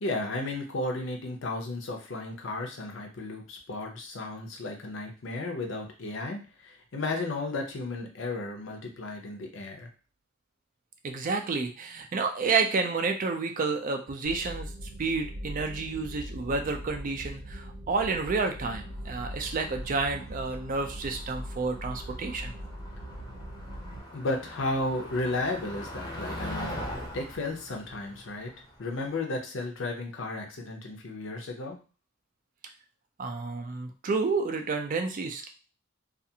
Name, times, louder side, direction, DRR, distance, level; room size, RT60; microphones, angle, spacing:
voice 1, 0.0-9.9 24.1-26.7 27.1-28.5 28.8-31.8, left 2 dB, 65° left, 3 dB, 0.6 m, -34 dB
voice 2, 11.0-14.7 15.0-22.5 33.2-35.5, right 4 dB, 40° right, 5 dB, 0.4 m, -30 dB
sound 1, 14.2-24.0, equal, 65° right, 0.7 m, -41 dB
Motor vehicle (road), 18.8-29.1, left 1 dB, 20° left, 0.6 m, -42 dB
2.4 x 2.4 x 2.7 m, 0.34 s
head